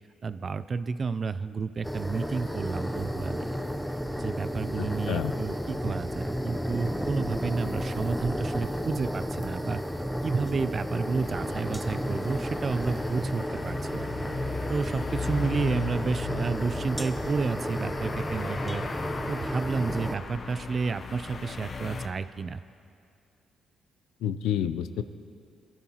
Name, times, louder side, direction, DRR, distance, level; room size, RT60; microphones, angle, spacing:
voice 1, 0.2-3.5 4.2-9.8 10.2-14.1 14.7-18.9 19.3-22.6, right 4 dB, 40° right, 14 dB, 0.4 m, -31 dB
sound 1, 1.8-20.2, equal, ahead, 0.8 m, -32 dB
voice 2, 4.8-5.3 24.2-25.0, left 10 dB, 85° left, 11 dB, 0.5 m, -29 dB
sound 2, 11.2-22.1, left 4 dB, 50° left, 0.9 m, -38 dB
22.0 x 12.0 x 3.0 m, 2.5 s
cardioid pair, 90°, 0 cm